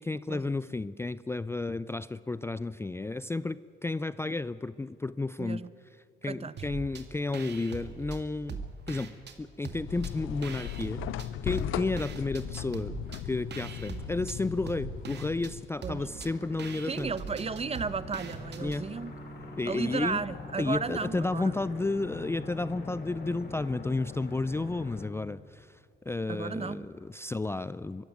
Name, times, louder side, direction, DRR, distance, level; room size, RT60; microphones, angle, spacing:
voice 1, 0.0-5.6 6.2-11.0 11.4-13.0 13.2-17.1 18.6-18.9 19.6-20.2 20.6-25.8 26.1-28.0, left 3 dB, 10° left, 16 dB, 0.4 m, -32 dB
voice 2, 5.4-5.7 6.3-6.5 15.8-16.0 16.8-19.1 19.7-21.5 26.3-26.9, right 5 dB, 30° right, 16 dB, 0.9 m, -34 dB
sound 1, 6.6-7.1 7.3-9.4 9.6-11.3 11.6-18.8, right 5 dB, 60° right, 2.1 m, -42 dB
sound 2, 9.9-15.6, left 13 dB, 85° left, 0.6 m, -37 dB
sound 3, 15.9-25.0, left 3 dB, 55° left, 4.7 m, -43 dB
23.5 x 14.5 x 9.2 m, 2.6 s
cardioid pair, 90°, 20 cm